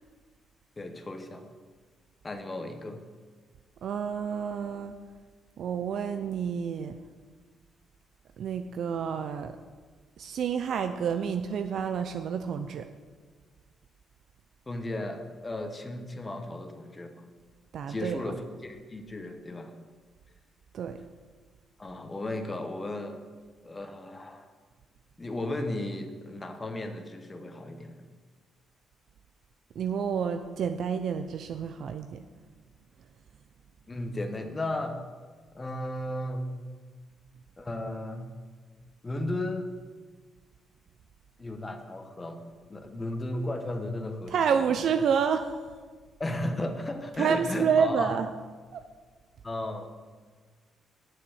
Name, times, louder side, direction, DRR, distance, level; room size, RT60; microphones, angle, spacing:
voice 1, 0.8-1.5 2.2-3.0 14.7-17.3 17.9-19.7 21.8-23.2 23.6-24.5 25.2-27.9 33.9-35.0 35.5-36.6 37.6-38.3 39.0-39.7 41.4-42.4 42.7-44.4 46.2-48.1 49.4-49.9, left 1 dB, 25° left, 6 dB, 1.2 m, -35 dB
voice 2, 3.8-4.9 5.6-7.0 8.4-9.5 10.2-12.9 17.7-18.3 20.7-21.0 29.8-32.2 44.3-45.6 47.2-48.3 48.7-48.8, right 7 dB, 65° right, 8 dB, 0.5 m, -29 dB
7.4 x 6.3 x 7.8 m, 1.5 s
cardioid pair, 90°, 0 cm